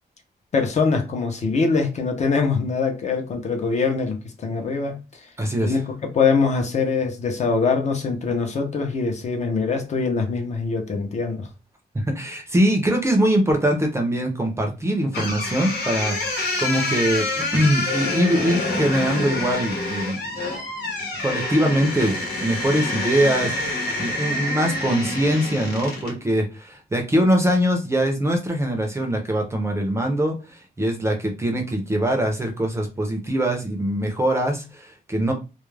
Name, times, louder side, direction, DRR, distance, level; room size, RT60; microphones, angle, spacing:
voice 1, 0.5-5.3 5.6-5.8 6.1-11.5, left 4 dB, 45° left, 0.5 m, -23 dB
voice 2, 5.4-5.8 11.9-20.6 21.2-35.3, right 1 dB, 15° right, 0.5 m, -23 dB
sound 1, 15.1-26.2, left 2 dB, 85° left, 1.0 m, -27 dB
2.3 x 2.1 x 3.1 m
wide cardioid pair, 170°, 17 cm